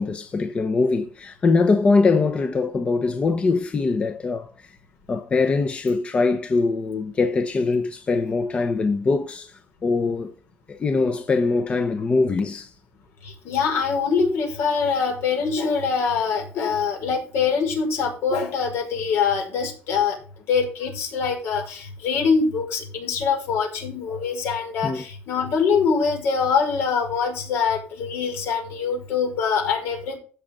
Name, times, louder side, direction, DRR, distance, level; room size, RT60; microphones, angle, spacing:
voice 1, 0.0-4.8 5.1-10.3 10.7-12.7 24.8-25.0, left 3 dB, 30° left, 1.0 m, -22 dB
voice 2, 13.2-20.2 20.5-30.2, left 5 dB, 75° left, 5.7 m, -24 dB
16.0 x 6.4 x 3.8 m
cardioid pair, 150°, 4 cm